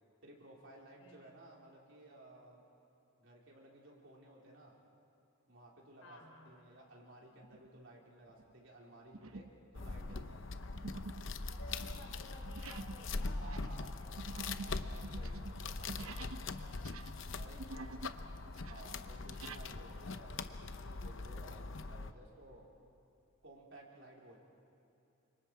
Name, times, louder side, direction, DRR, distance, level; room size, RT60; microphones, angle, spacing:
voice 1, 0.2-2.6 3.2-4.8 5.5-6.2 6.5-9.5 9.7-10.4 11.7-11.8 13.3-13.9 14.3-16.6 17.3-17.9 18.6-22.7 23.4-24.4, right 1 dB, 60° right, -2 dB, 4.0 m, -56 dB
voice 2, 1.0-1.4 6.0-6.7 10.6-14.3 15.8-17.0 17.4-18.2, left 2 dB, 85° left, 2 dB, 3.9 m, -57 dB
sound 1, 7.4-7.8 8.3-8.5 9.1-9.6 9.9-16.5 16.7-18.2 18.5-19.7, right 3 dB, 80° right, 0.9 m, -49 dB
sound 2, 9.7-22.1, left 3 dB, 60° left, 0.8 m, -42 dB
29.0 x 25.5 x 4.8 m, 2.8 s
head